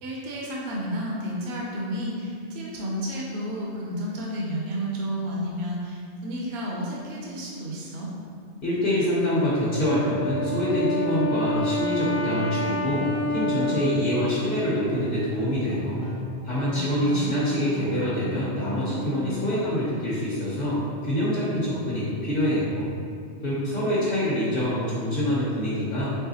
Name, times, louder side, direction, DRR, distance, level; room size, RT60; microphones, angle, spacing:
voice 1, 0.0-8.1 16.7-17.3, equal, 70° right, -3 dB, 0.9 m, -31 dB
voice 2, 8.6-13.0 13.3-16.0 16.4-22.9 23.4-26.3, equal, 55° left, -10 dB, 1.0 m, -25 dB
Wind instrument woodwind instrument, 9.8-15.2, equal, 80° left, 1.1 m, -29 dB
sound 1, 12.1-19.5, left 2 dB, 25° left, 0.5 m, -38 dB
4.7 x 3.2 x 2.8 m, 2.3 s
omnidirectional pair, 1.1 m